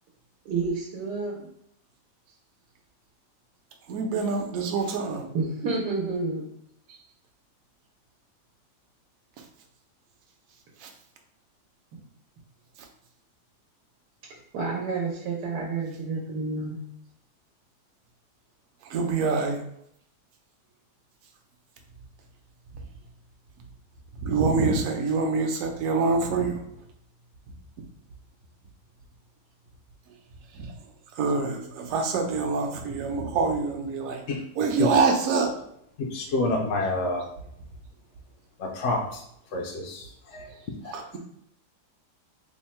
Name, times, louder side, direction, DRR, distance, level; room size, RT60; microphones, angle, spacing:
voice 1, 0.4-1.4 5.3-6.5 14.3-16.8, right 3 dB, 85° right, -1 dB, 1.3 m, -30 dB
voice 2, 3.9-5.3 10.8-10.9 18.9-19.6 24.2-26.6 30.5-30.7 31.2-34.2 34.6-35.5 40.8-41.2, right 4 dB, 65° right, 3 dB, 0.9 m, -25 dB
voice 3, 36.0-37.3 38.6-39.2 39.5-40.5 40.8-41.0, left 2 dB, 70° left, 0 dB, 0.7 m, -28 dB
3.5 x 2.1 x 4.2 m, 0.73 s
omnidirectional pair, 1.8 m